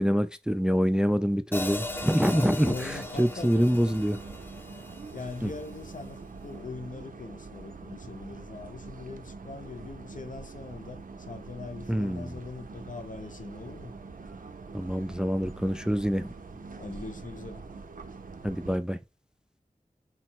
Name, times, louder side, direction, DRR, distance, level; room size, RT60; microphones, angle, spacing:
voice 1, 0.0-4.2 5.4-5.5 11.9-12.4 14.7-16.3 18.4-19.0, equal, 5° right, 0.3 m, -26 dB
Hi-hat, 1.5-5.7, left 2 dB, 15° left, 0.7 m, -38 dB
sound 1, 1.5-18.8, right 4 dB, 80° right, 0.5 m, -44 dB
voice 2, 2.3-3.6 5.1-13.9 16.8-17.7, left 3 dB, 70° left, 0.7 m, -41 dB
3.9 x 2.0 x 4.4 m
wide cardioid pair, 45°, 14 cm